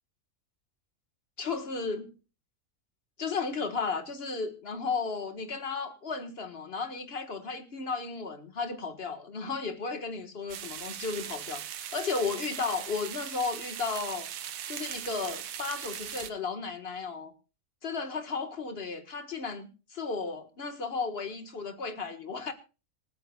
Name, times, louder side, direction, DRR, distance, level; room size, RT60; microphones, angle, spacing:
voice 1, 1.4-2.1 3.2-14.3 14.7-17.3 17.8-22.5, left 4 dB, 50° left, 1.8 m, -34 dB
sound 1, 10.5-16.3, right 10 dB, 85° right, 1.2 m, -39 dB
26.0 x 9.6 x 2.4 m
omnidirectional pair, 1.4 m